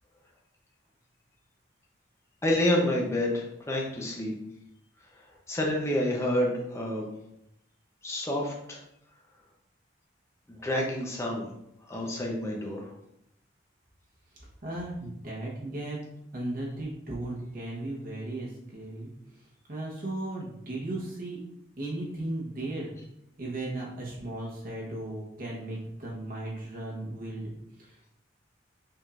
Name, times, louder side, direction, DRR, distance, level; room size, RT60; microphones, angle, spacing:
voice 1, 2.4-4.3 5.5-7.1 8.0-8.8 10.5-11.5 11.9-12.8, left 1 dB, 15° left, -1 dB, 0.7 m, -28 dB
voice 2, 14.6-16.0 16.3-19.1 19.7-21.4 21.8-22.9 23.4-27.4 27.8-28.0, right 1 dB, 50° right, -4 dB, 1.1 m, -36 dB
5.6 x 3.6 x 2.5 m, 0.79 s
head